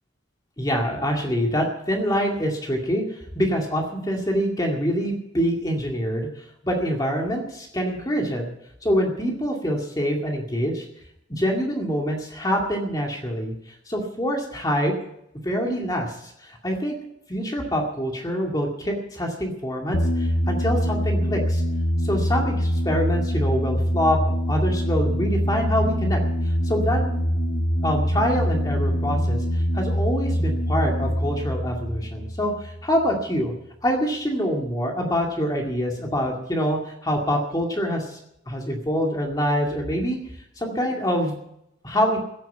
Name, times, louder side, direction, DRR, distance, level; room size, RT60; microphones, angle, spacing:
voice 1, 0.6-8.5 8.8-10.9 11.3-14.9 15.4-16.9 17.3-21.6 22.0-24.2 24.5-27.0 27.8-33.5 33.8-38.2 38.5-40.2 40.6-41.4 41.8-42.2, equal, 20° left, 0 dB, 2.2 m, -25 dB
sound 1, 19.9-33.1, equal, 55° left, 1.3 m, -24 dB
15.5 x 9.3 x 8.4 m, 0.79 s
head